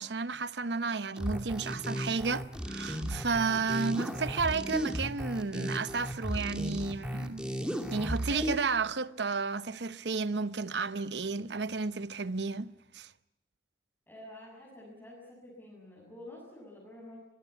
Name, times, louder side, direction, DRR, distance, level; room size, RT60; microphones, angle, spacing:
voice 1, 0.0-7.6 7.9-13.1, right 4 dB, 80° right, 0.9 m, -32 dB
sound 1, 1.2-8.5, equal, 5° right, 2.7 m, -35 dB
voice 2, 14.1-17.2, left 1 dB, 10° left, 7.3 m, -49 dB
23.5 x 21.0 x 8.3 m
head